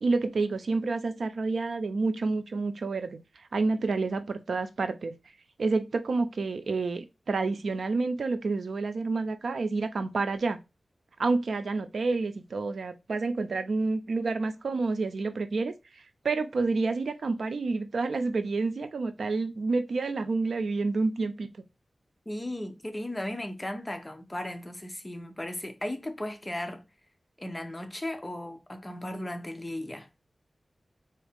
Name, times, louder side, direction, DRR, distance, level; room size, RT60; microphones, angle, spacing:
voice 1, 0.0-3.2 3.5-5.1 5.6-10.6 11.2-15.7 16.2-21.5, right 3 dB, 80° right, 0.5 m, -29 dB
voice 2, 22.3-26.8 27.4-30.1, left 1 dB, 20° left, 0.7 m, -36 dB
4.0 x 2.8 x 3.5 m
wide cardioid pair, 105°, 0 cm